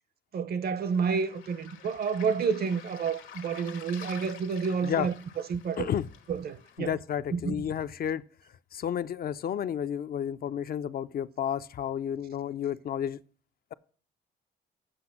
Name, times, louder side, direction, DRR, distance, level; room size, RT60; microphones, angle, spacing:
voice 1, 0.3-5.1 5.5-5.9 6.3-7.0 7.3-7.6, right 6 dB, 50° right, 0.7 m, -29 dB
Waves surf, 0.8-6.8, left 8 dB, 80° left, 1.3 m, -49 dB
voice 2, 5.8-6.1 6.8-8.2 8.7-13.2, left 9 dB, 50° left, 0.4 m, -31 dB
7.9 x 5.9 x 5.8 m
cardioid pair, 90°, 20 cm